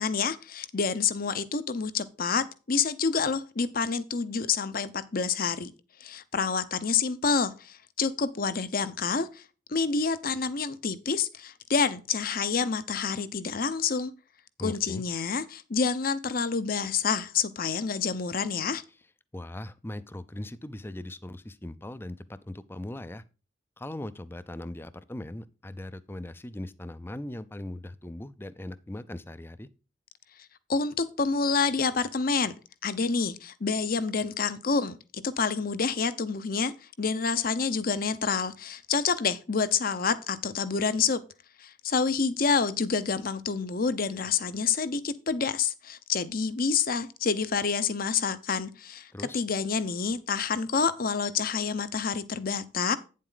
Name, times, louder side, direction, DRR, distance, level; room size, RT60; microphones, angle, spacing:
voice 1, 0.0-5.7 6.0-9.4 9.7-14.1 14.6-18.8 30.7-32.5 32.8-41.2 41.6-53.0, left 5 dB, 50° left, 0.7 m, -28 dB
voice 2, 14.6-15.0 19.3-23.2 23.8-29.7 49.1-49.4, left 1 dB, 10° left, 0.5 m, -39 dB
9.3 x 7.5 x 3.9 m
head